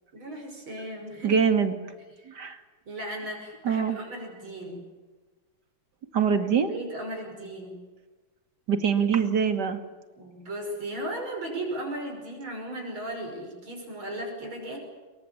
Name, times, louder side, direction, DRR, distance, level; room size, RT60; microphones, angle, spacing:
voice 1, 0.1-1.4 2.2-2.3 2.9-4.8 6.7-7.7 10.2-14.8, right 1 dB, 75° right, 1 dB, 6.8 m, -36 dB
voice 2, 1.2-1.8 2.3-2.6 3.6-4.0 6.1-6.7 8.7-9.8, right 6 dB, 55° right, 8 dB, 2.9 m, -24 dB
26.5 x 24.0 x 8.5 m, 1.3 s
omnidirectional pair, 2.2 m